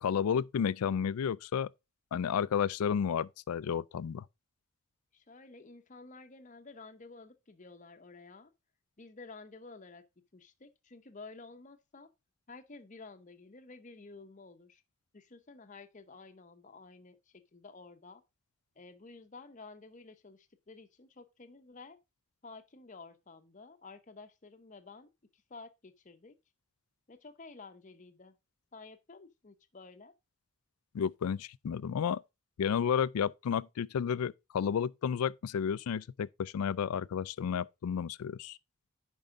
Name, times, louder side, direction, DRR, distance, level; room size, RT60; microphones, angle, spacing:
voice 1, 0.0-1.7 2.1-4.2 30.9-32.2 32.6-38.6, left 7 dB, 80° left, 0.4 m, -32 dB
voice 2, 5.1-8.5 9.0-10.0 10.3-12.1 12.5-14.8 15.1-18.2 18.8-22.0 22.4-26.3 27.1-28.4 28.7-30.1, left 3 dB, 35° left, 0.7 m, -52 dB
8.9 x 5.4 x 3.6 m
head